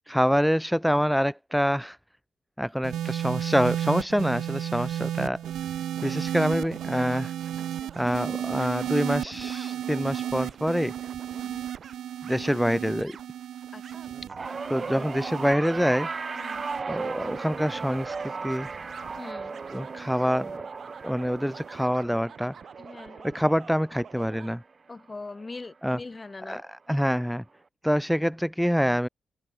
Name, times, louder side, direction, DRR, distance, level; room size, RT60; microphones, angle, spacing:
voice 1, 0.1-2.0 2.6-5.4 6.0-7.3 8.0-10.9 12.2-13.2 14.7-16.1 16.9-18.7 19.7-20.5 21.0-22.5 23.2-24.6 25.8-26.0 26.4-27.4 27.8-29.1, equal, ahead, 0.4 m, -26 dB
sound 1, 2.8-19.3 20.2-20.6, right 11 dB, 85° right, 1.7 m, -34 dB
sound 2, 5.2-24.5, right 7 dB, 45° right, 3.8 m, -48 dB
voice 2, 11.3-11.7 13.7-13.8 14.4-14.5 14.9-15.1 16.4-16.7 19.2-19.6 22.8-23.3 24.9-26.6, left 3 dB, 20° left, 3.1 m, -42 dB
sound 3, 14.3-24.7 25.1-25.5 26.6-26.7, right 4 dB, 25° right, 5.5 m, -37 dB
open air
wide cardioid pair, 165°, 0 cm